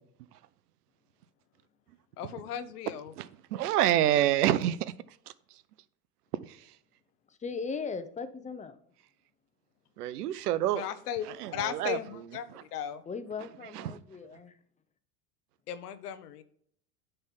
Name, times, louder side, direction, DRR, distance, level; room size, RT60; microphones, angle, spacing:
voice 1, 2.2-3.1 10.7-13.0 15.7-16.4, left 10 dB, 85° left, 0.9 m, -36 dB
voice 2, 3.2-4.9 6.5-6.6 10.0-10.8 11.4-12.0 13.7-14.0, right 12 dB, 85° right, 0.7 m, -27 dB
voice 3, 7.4-8.8 13.1-14.5, left 5 dB, 15° left, 0.7 m, -38 dB
9.7 x 3.4 x 5.7 m
hypercardioid pair, 95°, 45 cm